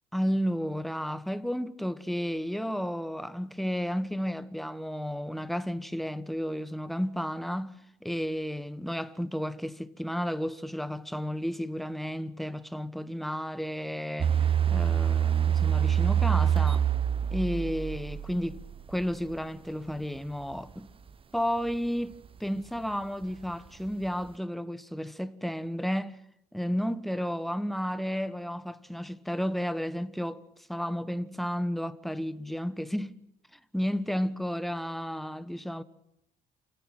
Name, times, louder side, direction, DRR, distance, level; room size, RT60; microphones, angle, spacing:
voice 1, 0.1-14.4 14.7-16.8 17.3-18.6 18.9-20.9 21.3-26.2 26.5-30.4 30.7-33.2 33.7-35.8, equal, ahead, 1.3 m, -32 dB
sound 1, 14.2-19.0 19.3-19.4, right 9 dB, 30° right, 0.9 m, -25 dB
28.5 x 17.0 x 9.0 m
cardioid pair, 110°, 17 cm